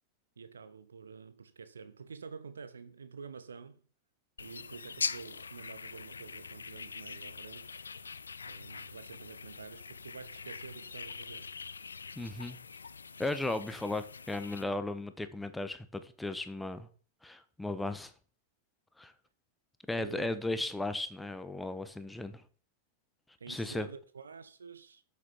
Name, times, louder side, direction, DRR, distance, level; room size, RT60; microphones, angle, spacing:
voice 1, 0.4-3.8 4.4-7.7 8.4-11.5 20.0-20.4 23.4-25.0, right 5 dB, 70° right, 0.9 m, -48 dB
sound 1, 4.4-14.6, left 5 dB, 75° left, 0.5 m, -43 dB
voice 2, 12.2-12.6 13.2-16.9 17.2-18.1 19.0-19.1 19.9-22.4 23.5-23.9, left 2 dB, 5° left, 1.1 m, -36 dB
13.0 x 7.0 x 4.5 m
figure-of-eight pair, 90°, 0 cm